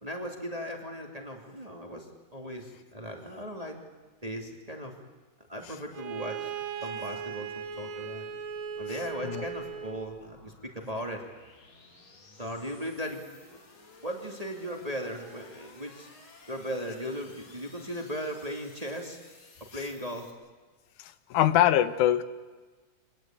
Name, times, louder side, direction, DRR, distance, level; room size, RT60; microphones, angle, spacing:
voice 1, 0.0-2.1 2.3-3.8 4.2-4.9 5.5-6.5 6.8-8.3 8.8-11.3 12.4-13.6 14.0-16.1 16.5-19.2 19.7-20.3, equal, 15° right, 1 dB, 2.3 m, -37 dB
Bowed string instrument, 5.9-10.1, right 7 dB, 50° right, 2.0 m, -38 dB
sound 1, 7.7-20.3, left 3 dB, 60° left, 4.3 m, -56 dB
voice 2, 21.3-22.2, left 12 dB, 90° left, 13 dB, 2.4 m, -22 dB
26.0 x 18.5 x 9.0 m, 1.4 s
omnidirectional pair, 3.4 m